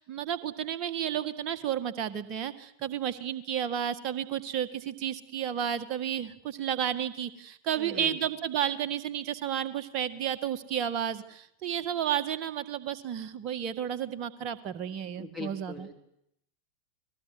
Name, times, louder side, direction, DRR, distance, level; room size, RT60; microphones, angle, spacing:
voice 1, 0.0-15.9, right 9 dB, 40° right, 10 dB, 1.8 m, -32 dB
voice 2, 7.8-8.2 15.2-15.9, left 2 dB, 5° right, 3 dB, 3.4 m, -40 dB
29.5 x 20.0 x 8.1 m, 0.78 s
figure-of-eight pair, 90°, 0 cm